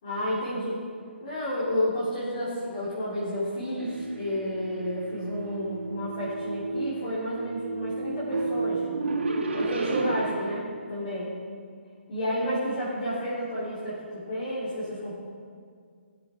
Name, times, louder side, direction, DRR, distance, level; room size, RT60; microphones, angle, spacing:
voice 1, 0.0-0.8 1.2-8.8 9.5-11.3 12.1-15.2, equal, 30° left, -12 dB, 3.4 m, -31 dB
sound 1, 3.8-10.6, right 3 dB, 65° right, 2.5 m, -32 dB
20.0 x 7.8 x 4.5 m, 2.1 s
hypercardioid pair, 175°, 7 cm